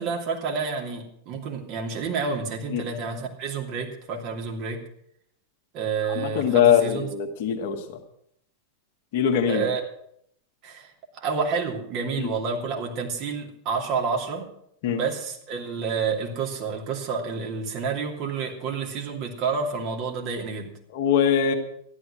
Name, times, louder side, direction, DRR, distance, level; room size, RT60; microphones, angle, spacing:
voice 1, 0.0-4.8 5.7-7.1 9.5-9.8 10.6-10.9 11.1-14.5 14.8-20.7, right 5 dB, 40° right, 1 dB, 2.8 m, -29 dB
voice 2, 6.0-8.0 9.1-9.6 12.2-12.3 14.8-15.0 20.9-21.5, left 8 dB, 50° left, 4 dB, 1.8 m, -22 dB
14.0 x 11.5 x 6.3 m, 0.70 s
figure-of-eight pair, 90°, 0 cm